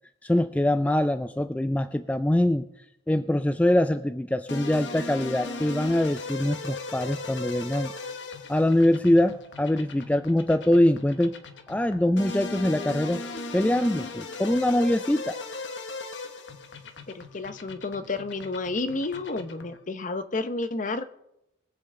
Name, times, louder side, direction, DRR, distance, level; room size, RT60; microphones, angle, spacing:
voice 1, 0.2-2.7 3.1-7.9 8.5-11.3 11.7-13.2 13.5-15.4, left 1 dB, 10° left, 10 dB, 0.3 m, -23 dB
sound 1, 4.5-19.8, left 3 dB, 80° left, 1.0 m, -38 dB
voice 2, 17.1-21.0, left 3 dB, 45° left, 10 dB, 0.8 m, -31 dB
22.5 x 7.9 x 3.7 m, 0.85 s
head